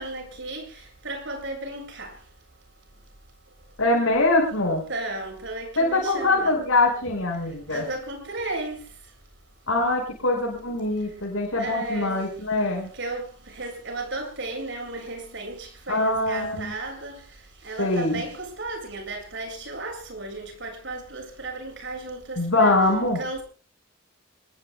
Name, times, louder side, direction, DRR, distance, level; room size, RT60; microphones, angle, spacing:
voice 1, 0.0-2.2 4.9-6.6 7.7-8.9 11.6-12.2 12.9-22.8 23.2-23.4, right 2 dB, 60° right, 7.3 m, -34 dB
voice 2, 3.8-4.8 5.8-7.9 9.7-12.9 15.9-16.7 17.8-18.2 22.4-23.2, left 2 dB, 75° left, 6.0 m, -23 dB
27.5 x 21.5 x 2.3 m
head